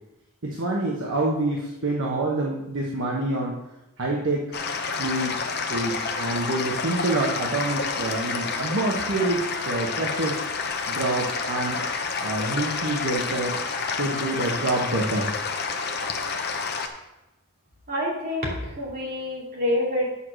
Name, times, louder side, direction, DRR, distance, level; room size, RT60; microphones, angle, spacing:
voice 1, 0.4-3.6 4.0-4.5 4.9-5.4 5.7-10.4 10.9-11.8 12.2-13.6 14.0-15.3, right 2 dB, 60° right, -2 dB, 1.1 m, -27 dB
sound 1, 4.5-16.9, left 4 dB, 45° left, 0.8 m, -29 dB
voice 2, 17.9-20.1, left 1 dB, 40° right, -4 dB, 2.8 m, -27 dB
8.6 x 4.8 x 6.1 m, 0.95 s
head